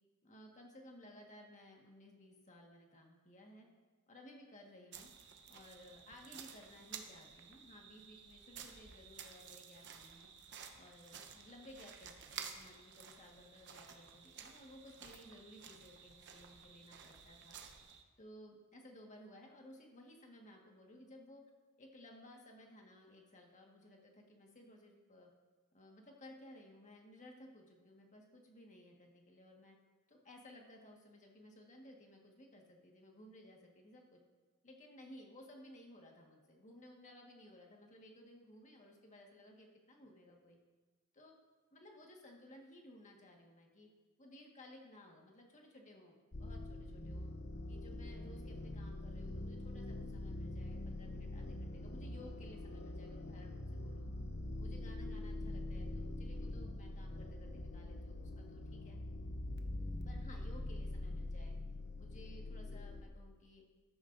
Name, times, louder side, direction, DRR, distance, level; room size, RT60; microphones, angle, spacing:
voice 1, 0.2-3.7 4.1-5.1 5.5-10.3 10.8-17.6 18.2-21.4 21.8-25.3 25.7-29.8 30.1-34.2 34.6-40.6 41.1-41.4 41.7-43.9 44.2-47.3 47.7-54.1 54.5-59.0 60.0-61.6 62.0-63.6, left 1 dB, 35° left, 0 dB, 1.6 m, -58 dB
sound 1, 4.9-18.0, right 7 dB, 55° right, 0.9 m, -53 dB
sound 2, 46.3-63.0, left 1 dB, 50° left, 0.8 m, -44 dB
14.0 x 12.5 x 2.6 m, 1.3 s
head